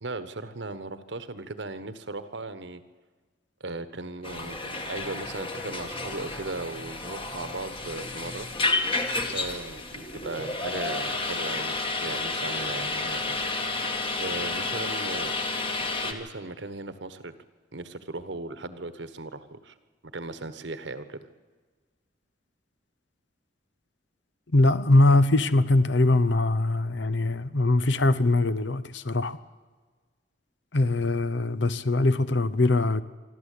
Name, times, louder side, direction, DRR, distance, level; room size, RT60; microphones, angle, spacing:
voice 1, 0.0-2.8 3.6-8.5 9.3-13.5 14.2-15.3 16.0-17.3 17.7-19.7 20.1-21.3, right 2 dB, 70° right, 1.2 m, -37 dB
sound 1, 4.2-16.1, left 3 dB, 30° left, 1.7 m, -31 dB
voice 2, 24.5-29.4 30.7-33.0, left 2 dB, 70° left, 0.8 m, -22 dB
25.0 x 13.0 x 8.5 m
head